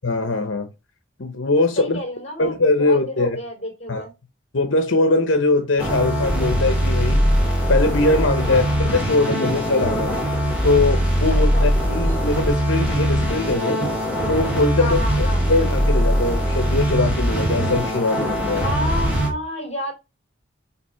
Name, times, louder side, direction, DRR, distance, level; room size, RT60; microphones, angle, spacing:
voice 1, 0.0-0.7 1.2-2.0 2.4-3.4 3.9-4.1 4.5-7.2 7.7-10.2 10.6-13.8 14.3-18.6, left 2 dB, 75° left, 1.0 m, -21 dB
voice 2, 1.8-4.1 8.4-8.7 11.3-11.7 14.8-15.4 18.6-19.9, equal, 30° left, 3.1 m, -30 dB
sound 1, 5.8-19.3, equal, 5° right, 2.7 m, -21 dB
5.9 x 4.2 x 5.7 m
head